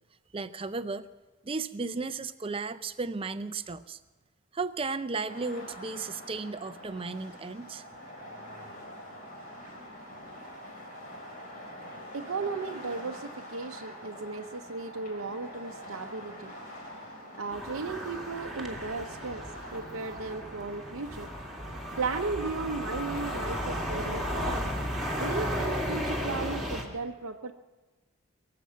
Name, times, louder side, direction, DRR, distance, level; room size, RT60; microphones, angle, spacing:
voice 1, 0.3-1.1 1.4-4.0 4.5-7.8, right 4 dB, 25° right, 13 dB, 0.5 m, -34 dB
sound 1, 5.3-22.0, equal, 40° left, 4.3 m, -45 dB
voice 2, 12.1-16.5 17.4-19.4 19.7-21.3 22.0-24.7 25.2-27.5, right 4 dB, 75° right, 4 dB, 0.7 m, -35 dB
sound 2, 17.5-26.8, equal, ahead, 2.1 m, -34 dB
23.0 x 7.7 x 7.5 m, 1.2 s
head